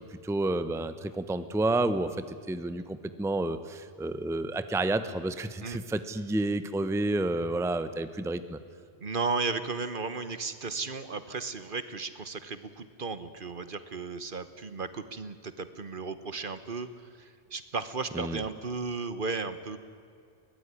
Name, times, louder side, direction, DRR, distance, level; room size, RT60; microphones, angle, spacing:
voice 1, 0.0-8.6 18.1-18.4, right 2 dB, 5° right, 12 dB, 0.8 m, -30 dB
voice 2, 9.0-19.8, right 4 dB, 50° right, 12 dB, 1.3 m, -35 dB
22.0 x 19.0 x 9.8 m, 2.3 s
omnidirectional pair, 1.1 m